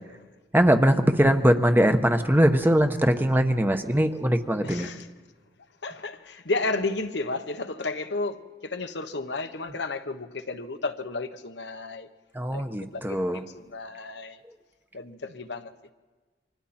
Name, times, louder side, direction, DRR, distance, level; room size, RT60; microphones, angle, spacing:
voice 1, 0.5-4.9 12.3-13.4, equal, 10° right, 1.1 m, -21 dB
voice 2, 4.6-5.1 5.8-12.1 12.5-12.6 12.9-14.4 14.9-15.7, left 3 dB, 75° left, 1.2 m, -32 dB
29.0 x 25.5 x 4.4 m
head